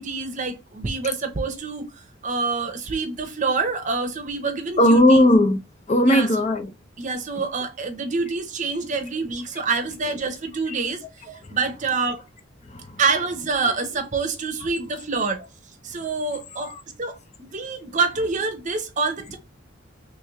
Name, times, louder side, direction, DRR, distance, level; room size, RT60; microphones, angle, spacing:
voice 1, 0.0-1.8 2.2-5.2 6.0-6.3 7.0-12.3 13.0-15.5 15.8-16.7 17.0-19.4, right 4 dB, 40° right, 0.7 m, -26 dB
voice 2, 4.8-5.6 5.9-6.7 10.7-10.8 11.5-11.6 12.6-13.0 16.7-16.8, left 1 dB, 35° left, 0.5 m, -17 dB
3.1 x 3.1 x 3.4 m
head